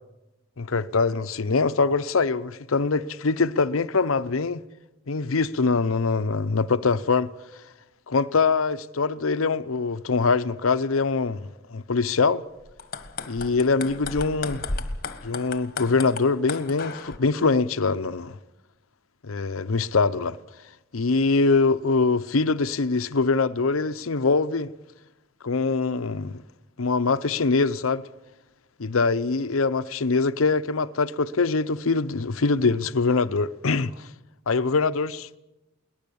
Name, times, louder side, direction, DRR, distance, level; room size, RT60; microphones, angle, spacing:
voice 1, 0.6-4.6 5.1-7.3 8.1-12.4 13.3-14.6 15.2-18.4 19.2-20.4 20.9-24.7 25.4-26.4 26.8-28.0 28.8-34.1 34.5-35.4, left 4 dB, 85° left, 0.7 m, -23 dB
sound 1, 12.7-17.2, left 3 dB, 45° left, 1.5 m, -34 dB
23.0 x 19.0 x 7.0 m
head